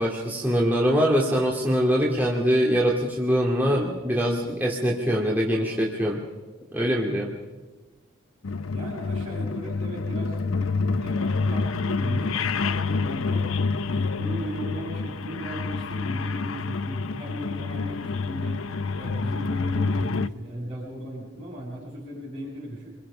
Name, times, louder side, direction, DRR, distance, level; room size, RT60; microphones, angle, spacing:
voice 1, 0.0-6.2 6.7-7.3, equal, 10° right, -2 dB, 2.5 m, -23 dB
sound 1, 8.4-20.3, left 4 dB, 75° left, 0.8 m, -27 dB
voice 2, 8.7-13.5 13.9-18.6 18.9-22.9, equal, 30° right, -7 dB, 6.7 m, -37 dB
29.0 x 22.0 x 5.7 m, 1.3 s
head